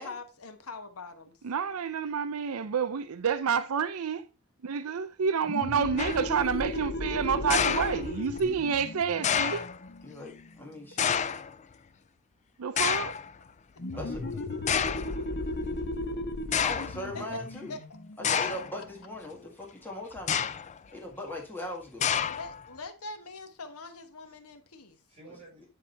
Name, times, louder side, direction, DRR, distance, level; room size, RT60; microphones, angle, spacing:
voice 1, 0.0-1.4 17.1-17.2 17.7-17.8 22.3-25.0, left 3 dB, 80° left, 1.2 m, -43 dB
voice 2, 1.4-4.2 4.6-9.7 12.6-13.1, right 6 dB, 70° right, 0.5 m, -29 dB
sound 1, 5.4-10.8 13.8-19.1, left 2 dB, 50° left, 0.9 m, -36 dB
sound 2, 6.0-6.4 7.5-8.4 9.2-9.8 11.0-11.5 12.8-13.3 14.1-14.2 14.7-15.1 16.0-16.1 16.5-17.0 18.2-18.8 20.2-20.8 22.0-22.6, left 8 dB, 30° left, 0.4 m, -28 dB
voice 3, 10.0-11.2 13.9-14.2 16.6-17.8 18.2-20.5 20.9-22.1 25.3-25.4, left 1 dB, 10° left, 1.8 m, -40 dB
voice 4, 13.9-15.2 24.3-24.4 25.1-25.7, right 3 dB, 30° right, 4.7 m, -52 dB
10.0 x 3.7 x 4.4 m
head